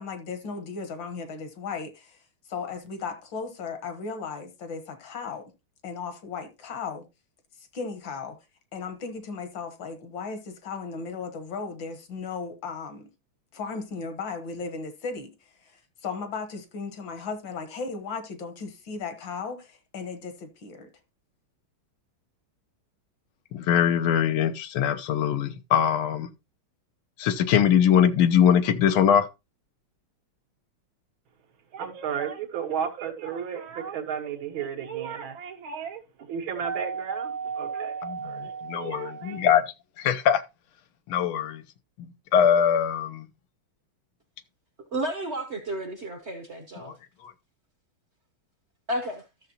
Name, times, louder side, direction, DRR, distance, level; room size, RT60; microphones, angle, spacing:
voice 1, 0.0-2.2 2.5-5.5 5.8-7.0 7.7-8.4 8.7-13.1 13.5-15.3 15.6-15.8 16.0-20.9, left 5 dB, 65° left, 2.0 m, -36 dB
voice 2, 23.5-26.3 27.2-29.3 38.0-39.6 40.0-40.4 41.1-41.6 42.0-43.3 46.9-47.0 47.2-47.3, left 8 dB, 85° left, 1.6 m, -22 dB
voice 3, 31.7-39.5, right 7 dB, 75° right, 2.1 m, -33 dB
voice 4, 44.9-46.9 48.9-49.2, right 1 dB, 45° right, 1.0 m, -32 dB
13.5 x 6.6 x 2.8 m
omnidirectional pair, 2.2 m